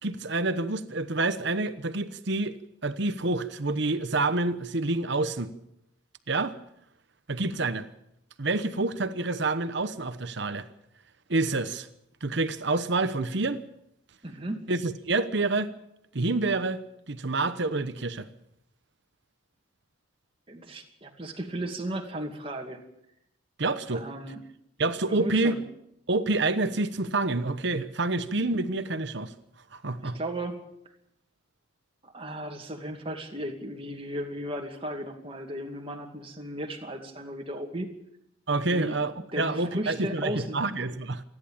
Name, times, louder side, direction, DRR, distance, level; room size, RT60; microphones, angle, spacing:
voice 1, 0.0-2.6 2.8-5.5 6.3-6.6 7.3-7.9 8.4-10.7 11.3-11.9 12.2-13.6 14.7-15.7 16.1-16.8 17.1-18.3 23.6-24.0 24.8-25.6 26.1-29.3 29.7-30.2 38.5-41.2, right 2 dB, 55° right, 12 dB, 1.0 m, -28 dB
voice 2, 14.2-14.6 20.5-22.8 23.9-24.4 25.1-25.6 30.0-30.6 32.0-37.9 38.7-39.0 39.3-40.7, right 1 dB, 25° right, 3 dB, 2.4 m, -35 dB
27.5 x 11.0 x 8.8 m, 0.81 s
head